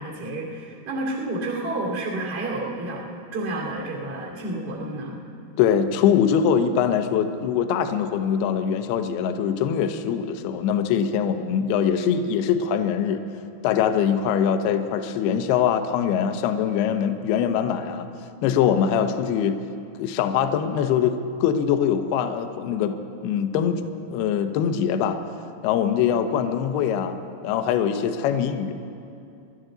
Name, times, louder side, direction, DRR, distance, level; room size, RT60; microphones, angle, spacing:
voice 1, 0.0-5.2, right 2 dB, 25° right, -4 dB, 1.3 m, -30 dB
voice 2, 5.6-13.2 13.6-18.1 18.4-19.6 20.0-22.9 23.2-23.8 24.1-25.2 25.6-27.2 27.4-28.7, left 8 dB, 75° left, 7 dB, 2.5 m, -23 dB
26.5 x 12.5 x 3.9 m, 2.6 s
omnidirectional pair, 5.2 m